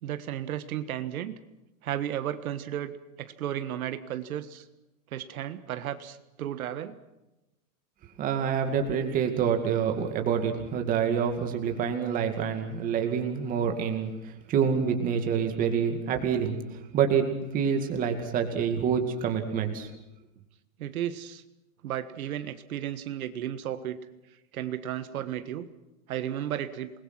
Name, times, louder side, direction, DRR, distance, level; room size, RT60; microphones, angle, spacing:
voice 1, 0.0-1.4 1.8-4.6 5.1-7.0 20.8-21.4 21.8-24.0 24.5-25.7 26.1-26.9, right 11 dB, 70° right, 11 dB, 1.6 m, -34 dB
voice 2, 8.2-16.6 16.9-17.3 17.5-19.9, right 7 dB, 20° right, 5 dB, 2.3 m, -27 dB
28.0 x 21.0 x 6.0 m, 0.97 s
supercardioid pair, 175°, 44 cm